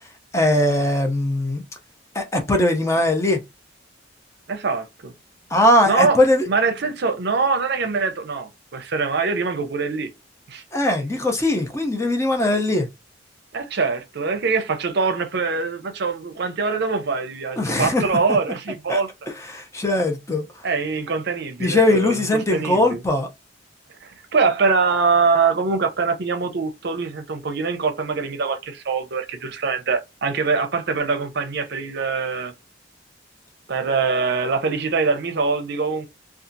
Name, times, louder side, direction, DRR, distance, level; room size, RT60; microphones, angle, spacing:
voice 1, 0.3-1.6 2.1-3.4 5.5-6.4 10.7-12.9 17.6-18.0 18.9-19.0 19.5-20.4 21.6-23.3, left 1 dB, 15° left, 0.6 m, -20 dB
voice 2, 4.5-5.1 5.9-6.2 6.5-10.1 10.5-10.6 13.5-19.1 20.6-23.0 24.0-32.5 33.7-36.1, right 4 dB, 60° right, 0.6 m, -23 dB
2.7 x 2.4 x 2.6 m
head